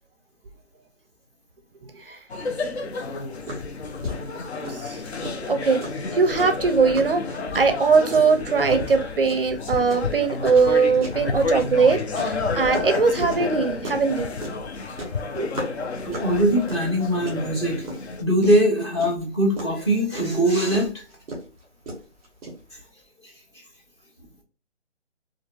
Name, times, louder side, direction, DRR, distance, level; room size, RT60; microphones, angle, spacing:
sound 1, 2.3-18.2, left 4 dB, 65° left, 0.7 m, -31 dB
sound 2, 3.1-3.2 3.5-3.7 4.0-22.8, right 1 dB, 10° right, 1.2 m, -36 dB
voice 1, 5.5-5.8 6.1-7.2 7.5-14.3 15.4-15.5, right 4 dB, 50° right, 0.4 m, -20 dB
voice 2, 16.0-17.8 18.2-20.9, equal, 25° left, 0.8 m, -21 dB
3.0 x 2.4 x 2.3 m
figure-of-eight pair, 155°, 36 cm